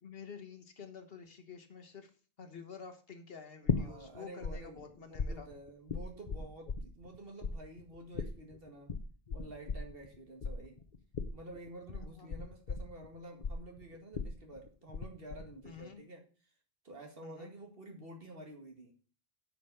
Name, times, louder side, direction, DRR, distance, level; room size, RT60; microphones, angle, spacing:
voice 1, 0.0-2.1 2.4-5.5 12.0-12.3 15.6-16.0 17.2-17.5, left 5 dB, 65° left, 7 dB, 1.4 m, -49 dB
voice 2, 3.6-8.9 9.3-10.8 11.3-16.2 16.8-18.9, right 1 dB, 65° right, 2 dB, 2.2 m, -50 dB
sound 1, 3.7-4.5 4.8-7.2 7.4-15.0 15.3-15.8, left 5 dB, 50° left, 0.9 m, -37 dB
8.9 x 5.1 x 6.8 m, 0.39 s
omnidirectional pair, 1.0 m